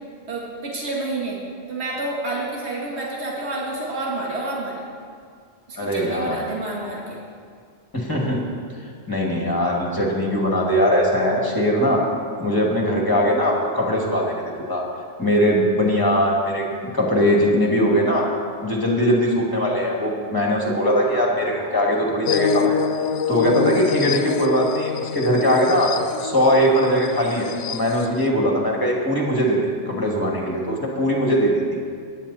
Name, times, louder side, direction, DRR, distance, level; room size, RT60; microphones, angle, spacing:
voice 1, 0.3-1.4 1.7-4.8 5.7-7.2, right 2 dB, 65° right, -3 dB, 2.2 m, -29 dB
voice 2, 5.8-6.3 7.9-8.4 9.1-12.0 12.4-14.8 15.2-16.7 16.9-18.3 18.6-22.8 23.3-25.9 26.2-29.6 29.9-31.8, equal, 20° left, -2 dB, 2.4 m, -20 dB
sound 1, 22.3-28.3, left 7 dB, 85° left, 0.9 m, -26 dB
16.5 x 11.0 x 4.3 m, 2.1 s
omnidirectional pair, 1.2 m